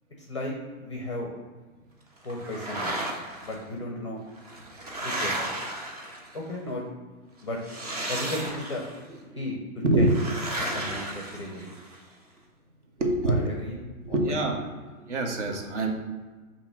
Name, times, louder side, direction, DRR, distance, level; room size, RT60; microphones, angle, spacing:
voice 1, 0.2-1.3 2.2-3.0 3.4-4.2 5.0-5.5 6.3-6.8 7.4-7.6 8.1-8.8 9.3-10.3 10.7-11.8 13.3-13.8 14.1-14.6, left 1 dB, 20° left, 0 dB, 0.5 m, -35 dB
sound 1, 2.3-3.5 4.3-6.5 7.6-9.0 10.1-12.0, right 1 dB, 30° right, 0.6 m, -34 dB
voice 2, 9.8-10.2 10.7-11.0 13.0-13.4 14.0-14.7 15.1-15.9, right 2 dB, 55° right, 2 dB, 1.3 m, -25 dB
6.8 x 2.9 x 5.8 m, 1.4 s
hypercardioid pair, 175°, 43 cm